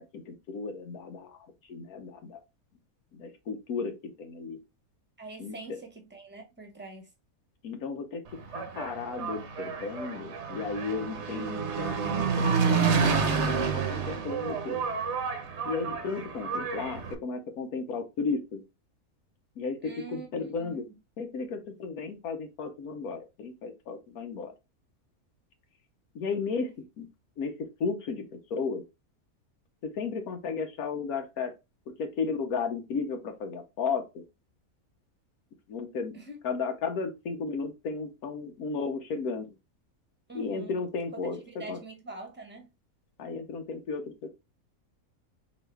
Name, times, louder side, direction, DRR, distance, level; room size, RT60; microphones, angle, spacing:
voice 1, 0.0-2.4 3.1-4.6 5.4-5.5 7.6-8.2 8.5-14.8 15.6-18.6 19.6-20.9 21.2-24.5 26.1-27.1 27.4-28.8 29.8-31.5 32.0-34.2 35.7-36.2 36.4-39.5 40.3-41.8 43.2-44.3, left 4 dB, 85° left, 1.3 m, -34 dB
voice 2, 5.2-7.1 19.8-20.8 36.1-36.4 40.3-40.7 41.6-42.7, right 3 dB, 10° right, 1.1 m, -44 dB
Engine, 8.3-17.1, right 5 dB, 55° right, 1.0 m, -29 dB
4.7 x 3.0 x 3.3 m
omnidirectional pair, 1.5 m